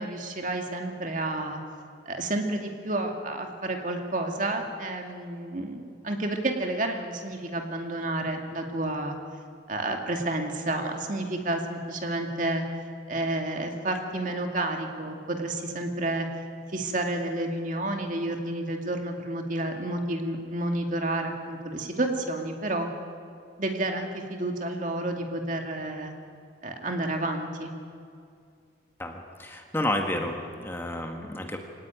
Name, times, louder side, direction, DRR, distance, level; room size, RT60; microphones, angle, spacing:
voice 1, 0.0-1.6 2.1-9.2 9.7-12.6 13.1-16.3 16.7-22.9 23.6-26.1 26.6-27.7, right 2 dB, 45° right, 3 dB, 2.4 m, -30 dB
voice 2, 29.0-31.6, left 1 dB, 10° left, 3 dB, 1.7 m, -31 dB
24.5 x 18.5 x 9.1 m, 2.3 s
head